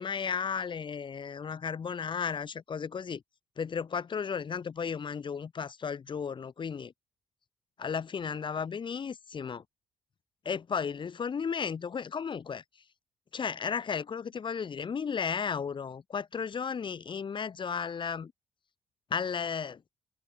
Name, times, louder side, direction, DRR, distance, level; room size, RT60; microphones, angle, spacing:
voice 1, 0.0-3.2 3.6-6.9 7.8-9.6 10.4-12.6 13.3-18.3 19.1-19.8, left 6 dB, 40° left, 7.7 m, -34 dB
figure-of-eight pair, 40°, 12 cm